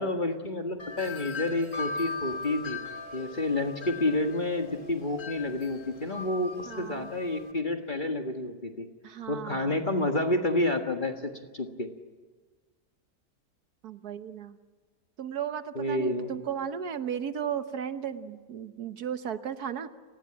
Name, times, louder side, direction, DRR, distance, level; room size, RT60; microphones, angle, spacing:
voice 1, 0.0-2.8 3.1-8.9 9.3-11.9 15.7-16.3, left 2 dB, 30° left, 4 dB, 1.7 m, -29 dB
Wind chime, 0.8-7.5, left 4 dB, 50° left, 2.7 m, -39 dB
voice 2, 6.7-7.1 9.0-9.7 13.8-14.6 15.2-19.9, right 8 dB, 65° right, 10 dB, 1.5 m, -35 dB
30.0 x 19.0 x 8.8 m, 1.4 s
omnidirectional pair, 1.8 m